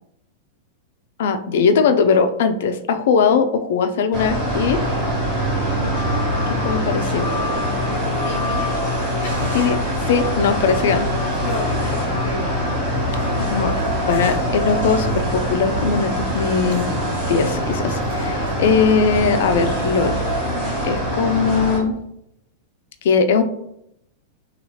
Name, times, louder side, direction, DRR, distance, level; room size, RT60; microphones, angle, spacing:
voice 1, 1.2-4.8 6.6-7.3 9.5-9.8 10.1-11.1 11.9-12.0 13.4-13.7 14.0-16.9 17.3-20.2 20.8-21.9 23.0-23.4, left 5 dB, 65° left, 8 dB, 0.3 m, -19 dB
sound 1, 4.1-21.8, equal, 25° right, 1.5 m, -23 dB
voice 2, 8.2-8.7 9.2-9.4 10.8-12.6, left 1 dB, 45° left, 2 dB, 0.9 m, -32 dB
sound 2, 9.2-20.0, right 1 dB, 80° right, 0.7 m, -36 dB
2.8 x 2.3 x 3.1 m, 0.78 s
supercardioid pair, 165°, 0 cm